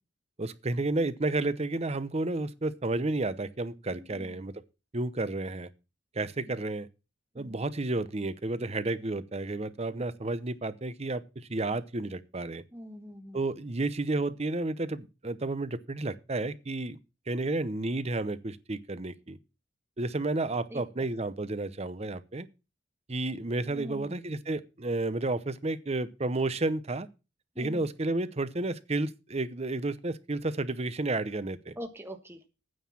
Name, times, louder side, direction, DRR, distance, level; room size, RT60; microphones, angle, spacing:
voice 1, 0.4-4.6 4.9-5.7 6.1-6.9 7.3-12.6 13.3-17.0 17.3-19.4 20.0-22.5 23.1-27.1 27.6-31.7, right 2 dB, 35° right, 0.8 m, -31 dB
voice 2, 3.9-4.5 6.4-6.5 7.4-7.6 9.9-10.0 12.7-13.4 20.7-20.8 23.7-24.1 27.5-27.8 31.8-32.5, equal, 10° right, 1.3 m, -43 dB
9.4 x 6.5 x 7.3 m
head